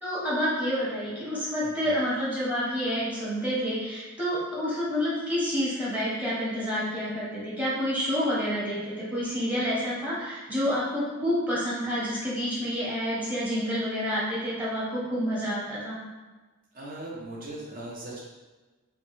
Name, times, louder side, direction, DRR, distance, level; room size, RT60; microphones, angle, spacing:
voice 1, 0.0-16.0, equal, 5° right, -8 dB, 1.1 m, -28 dB
voice 2, 1.6-2.0 16.7-18.2, right 1 dB, 40° right, -4 dB, 0.8 m, -39 dB
3.7 x 2.2 x 3.1 m, 1.3 s
head